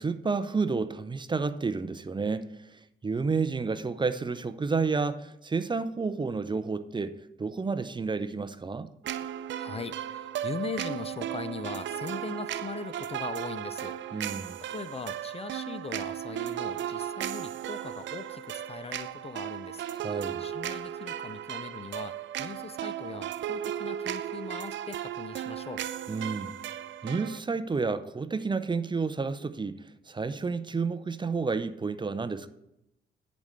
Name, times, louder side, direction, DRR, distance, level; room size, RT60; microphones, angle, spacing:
voice 1, 0.0-7.1 7.4-8.9 14.1-14.5 20.0-20.4 26.1-26.5 27.0-29.8 30.1-32.5, right 4 dB, 25° right, 0.6 m, -30 dB
sound 1, 9.0-27.4, right 10 dB, 75° right, 0.6 m, -36 dB
voice 2, 9.2-19.8 20.4-25.8, left 5 dB, 30° left, 0.5 m, -40 dB
10.5 x 5.3 x 8.0 m
cardioid pair, 95°, 19 cm